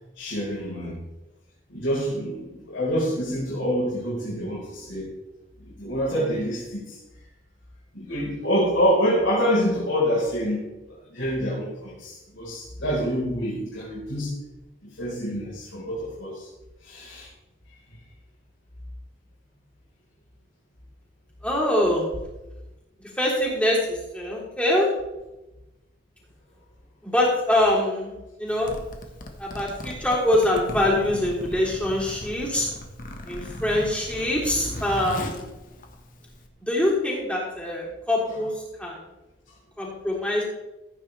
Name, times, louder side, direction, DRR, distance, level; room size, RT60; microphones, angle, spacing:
voice 1, 0.2-1.0 1.7-5.1 5.6-7.0 7.9-10.6 11.1-14.4 15.0-16.5 16.8-17.3 38.3-38.4, equal, 80° left, -7 dB, 4.4 m, -26 dB
voice 2, 21.4-22.1 23.2-24.9 27.0-28.7 29.4-32.7 33.3-35.5 36.6-38.5 38.8-39.0 39.8-40.4, left 1 dB, 5° left, -5 dB, 3.5 m, -24 dB
Zipper (clothing), 28.5-36.5, left 1 dB, 45° left, 1.4 m, -37 dB
15.5 x 9.2 x 3.4 m, 1.0 s
head